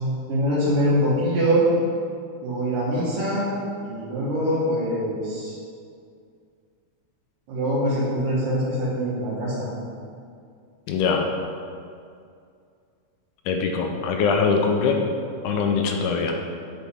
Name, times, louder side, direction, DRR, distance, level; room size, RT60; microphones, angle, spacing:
voice 1, 0.0-1.6 2.4-3.5 3.8-5.5 7.5-9.7, equal, 80° right, -12 dB, 3.0 m, -24 dB
voice 2, 10.9-11.2 13.5-15.1 15.4-16.3, left 5 dB, 80° left, 3 dB, 2.0 m, -22 dB
8.3 x 4.1 x 3.6 m, 2.3 s
omnidirectional pair, 3.7 m